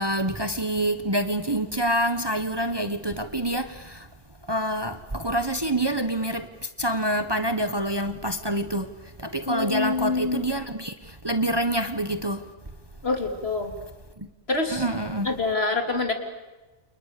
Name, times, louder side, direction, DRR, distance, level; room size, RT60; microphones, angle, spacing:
voice 1, 0.0-4.1 4.5-6.5 6.8-8.9 9.2-12.5 14.7-15.3, right 1 dB, 20° right, 1.3 m, -26 dB
voice 2, 9.5-10.4 13.0-13.7 14.5-14.8 15.3-16.1, left 3 dB, 55° left, 3.6 m, -26 dB
29.5 x 29.0 x 6.9 m
omnidirectional pair, 1.2 m